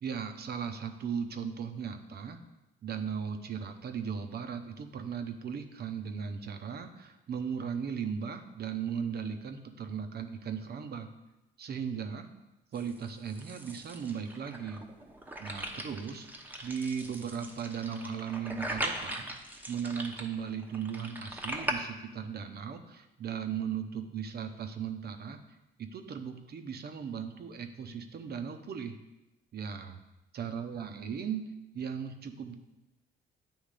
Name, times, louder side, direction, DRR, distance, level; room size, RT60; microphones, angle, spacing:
voice 1, 0.0-2.4 2.8-11.1 11.6-12.3 12.7-14.8 15.4-19.3 19.7-25.4 25.8-29.0 29.5-29.9 30.3-31.4 31.7-32.6, right 7 dB, 55° right, 7 dB, 0.8 m, -37 dB
sound 1, 12.7-21.7, right 1 dB, 10° right, 0.9 m, -40 dB
8.9 x 3.1 x 4.9 m, 0.95 s
cardioid pair, 90°, 20 cm